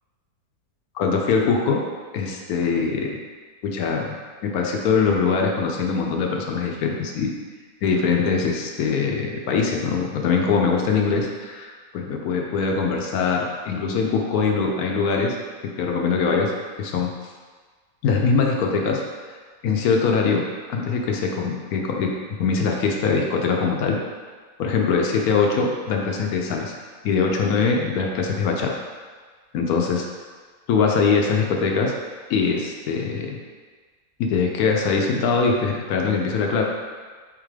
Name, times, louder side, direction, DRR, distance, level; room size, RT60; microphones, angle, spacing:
voice 1, 1.0-1.8 2.1-3.2 3.6-4.1 4.4-7.3 7.8-15.4 15.8-16.5 16.8-17.1 18.0-19.0 19.6-20.4 20.7-22.1 22.4-24.0 24.6-26.8 27.0-28.7 29.5-30.1 30.7-31.9 32.3-33.4 34.2-36.6, left 5 dB, 75° left, 1 dB, 1.0 m, -22 dB
4.0 x 3.6 x 3.2 m, 1.5 s
omnidirectional pair, 1.7 m